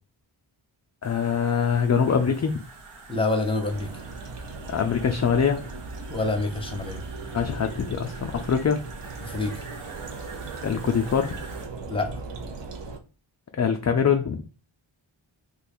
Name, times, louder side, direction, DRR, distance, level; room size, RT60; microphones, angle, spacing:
voice 1, 1.0-2.6 4.7-5.6 7.3-8.8 10.6-11.4 13.6-14.4, left 7 dB, 35° left, 5 dB, 0.4 m, -23 dB
sound 1, 1.0-11.7, right 4 dB, 85° right, 0.9 m, -46 dB
voice 2, 3.1-3.9 6.1-7.0 9.2-9.5 11.9-12.1, left 2 dB, 10° left, 4 dB, 0.8 m, -26 dB
sound 2, 3.7-13.0, right 3 dB, 60° right, 0.7 m, -38 dB
2.9 x 2.3 x 4.2 m, 0.36 s
wide cardioid pair, 60°, 49 cm